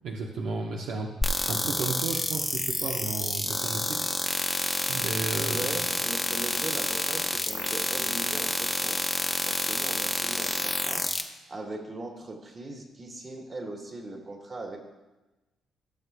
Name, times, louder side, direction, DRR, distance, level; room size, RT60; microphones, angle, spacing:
voice 1, 0.0-1.1 1.4-4.0 4.9-5.8, right 3 dB, 75° right, 0 dB, 0.9 m, -33 dB
sound 1, 1.2-11.2, left 1 dB, 10° left, 0.9 m, -29 dB
voice 2, 5.5-11.0 11.5-14.8, right 2 dB, 35° right, 1 dB, 2.0 m, -39 dB
17.0 x 6.9 x 2.3 m, 1.1 s
cardioid pair, 90°, 0 cm